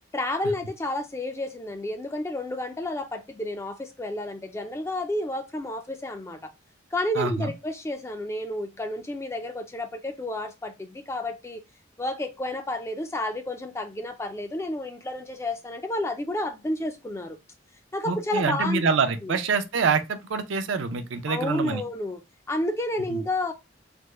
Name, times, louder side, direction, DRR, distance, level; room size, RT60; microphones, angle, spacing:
voice 1, 0.1-6.5 6.9-11.6 12.0-17.4 17.9-18.9 19.2-19.4 21.3-22.2 22.5-23.5, left 1 dB, 15° left, 0.3 m, -30 dB
voice 2, 7.2-7.5 18.1-21.8 23.1-23.2, right 5 dB, 75° right, 0.5 m, -26 dB
3.4 x 2.0 x 3.0 m
head